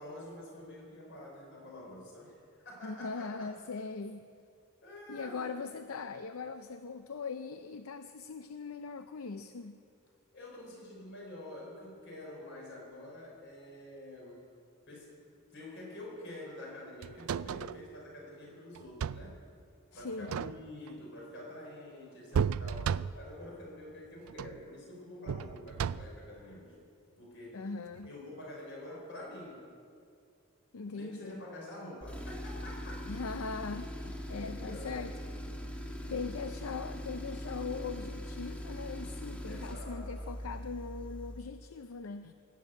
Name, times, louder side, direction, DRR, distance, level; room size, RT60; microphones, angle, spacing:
voice 1, 0.0-3.5 4.8-5.5 10.3-14.4 14.9-15.2 15.5-19.4 19.9-26.8 27.2-27.7 28.0-29.7 30.9-33.0 34.6-35.2 39.5-40.5, left 1 dB, 60° left, -2 dB, 5.5 m, -47 dB
voice 2, 2.8-4.3 5.1-9.8 19.9-20.4 27.5-28.1 30.7-31.4 33.1-35.1 36.1-42.3, left 4 dB, 80° left, 9 dB, 0.6 m, -40 dB
sound 1, 17.0-17.8 18.7-19.4 20.1-20.9 22.3-23.4 24.3-24.6 25.3-26.3 28.0-28.1, right 7 dB, 80° right, 0.4 m, -34 dB
Tools, 32.0-41.5, left 1 dB, 5° left, 1.4 m, -41 dB
18.5 x 9.5 x 8.2 m, 2.4 s
head